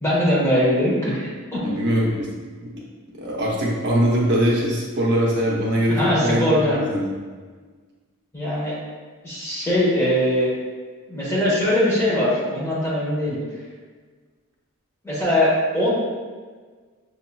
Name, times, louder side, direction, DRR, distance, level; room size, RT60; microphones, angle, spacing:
voice 1, 0.0-1.6 5.9-6.8 8.3-8.8 9.2-10.5 11.1-13.4 15.0-15.9, left 1 dB, 10° left, -7 dB, 1.0 m, -21 dB
voice 2, 1.6-2.8 3.2-7.1, equal, 50° right, -4 dB, 0.8 m, -22 dB
6.1 x 2.8 x 2.2 m, 1.5 s
head